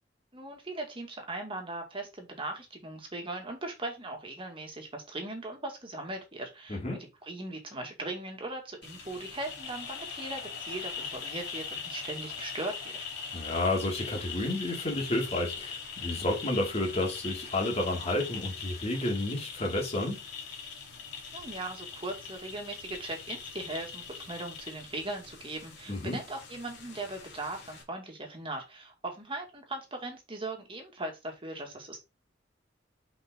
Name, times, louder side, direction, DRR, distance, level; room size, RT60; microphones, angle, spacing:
voice 1, 0.3-6.8 7.2-13.0 21.3-32.0, right 2 dB, 30° right, 2.2 m, -39 dB
voice 2, 6.7-7.0 13.3-20.2 25.9-26.2, left 1 dB, 35° left, 2.5 m, -31 dB
sound 1, 8.8-27.8, left 6 dB, 65° left, 2.4 m, -41 dB
5.7 x 5.3 x 3.8 m
head